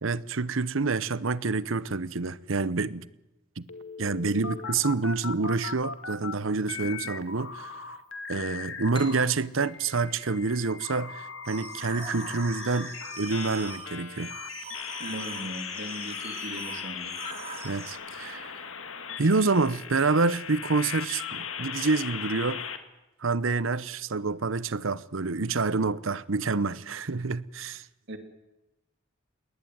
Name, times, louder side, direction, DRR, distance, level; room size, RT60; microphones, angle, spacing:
voice 1, 0.0-3.1 3.6-3.7 4.0-7.8 8.3-14.3 17.6-18.5 19.2-22.6 23.2-27.8, right 3 dB, 75° right, 0.9 m, -27 dB
sound 1, 3.7-6.3 6.7-9.2 9.6-22.8, left 6 dB, 75° left, 2.1 m, -38 dB
sound 2, 8.9-12.3, left 2 dB, 25° left, 4.3 m, -49 dB
sound 3, 11.4-17.9, right 5 dB, 30° right, 4.4 m, -43 dB
voice 2, 15.0-17.1 28.1-28.2, right 1 dB, 60° right, 3.0 m, -38 dB
21.0 x 18.5 x 9.4 m
head